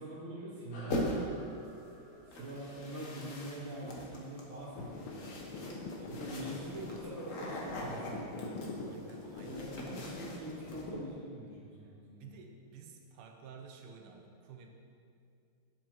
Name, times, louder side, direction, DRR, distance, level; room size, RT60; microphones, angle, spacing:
voice 1, 0.0-1.4 2.3-5.5 6.0-8.7 9.4-12.3, right 1 dB, 65° right, -7 dB, 2.6 m, -44 dB
sound 1, 0.7-5.5, equal, 70° left, 2.2 m, -54 dB
sound 2, 0.9-1.5 2.3-10.9, left 1 dB, 50° left, 1.2 m, -42 dB
sound 3, 4.7-11.1, left 3 dB, 90° left, 1.7 m, -44 dB
voice 2, 6.6-7.1 8.8-9.7 11.8-14.7, right 6 dB, 90° right, 3 dB, 1.7 m, -53 dB
10.0 x 7.6 x 3.1 m, 2.4 s
omnidirectional pair, 2.3 m